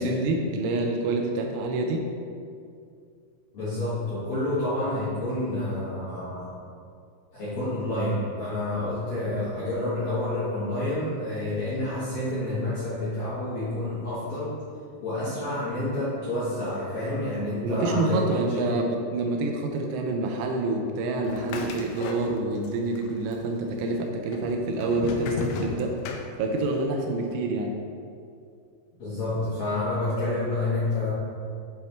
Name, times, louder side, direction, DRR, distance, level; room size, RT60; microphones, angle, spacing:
voice 1, 0.0-2.0 17.6-26.0 26.4-27.7, right 2 dB, 85° right, 2 dB, 2.9 m, -27 dB
voice 2, 3.5-6.6 7.3-14.5 15.0-18.6 29.0-31.1, left 1 dB, 70° left, -13 dB, 1.7 m, -29 dB
sound 1, 21.2-22.7 23.0-23.7 24.3-26.8, left 4 dB, 85° left, 3.2 m, -34 dB
8.2 x 3.5 x 4.2 m, 2.4 s
omnidirectional pair, 5.9 m